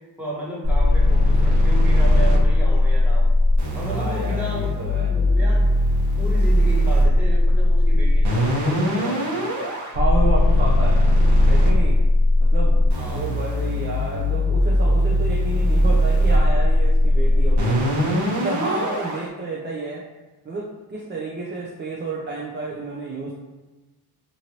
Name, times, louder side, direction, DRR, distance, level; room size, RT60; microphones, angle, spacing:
voice 1, 0.2-3.3 3.7-5.6 6.2-9.5 12.9-13.3, equal, 5° right, -7 dB, 1.3 m, -33 dB
sound 1, 0.6-19.2, left 1 dB, 75° right, 1.2 m, -18 dB
voice 2, 3.9-5.1 9.9-11.0 11.5-12.0 12.4-12.8 13.1-20.0 20.4-23.3, right 2 dB, 25° right, -3 dB, 0.5 m, -30 dB
3.0 x 2.5 x 2.9 m, 1.2 s
cardioid pair, 70°, 40 cm